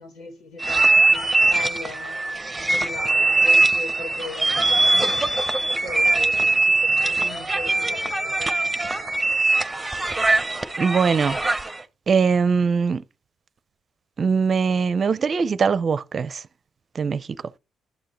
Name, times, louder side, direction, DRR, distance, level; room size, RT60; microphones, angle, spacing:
voice 1, 0.0-2.2 2.7-5.2 5.5-8.6, left 3 dB, 85° left, 3.7 m, -39 dB
sound 1, 0.6-11.8, right 2 dB, 10° right, 0.9 m, -21 dB
voice 2, 10.8-11.4 12.1-13.0 14.2-16.4 16.9-17.3, right 5 dB, 45° right, 0.5 m, -21 dB
11.5 x 6.7 x 3.1 m
cardioid pair, 90°, 0 cm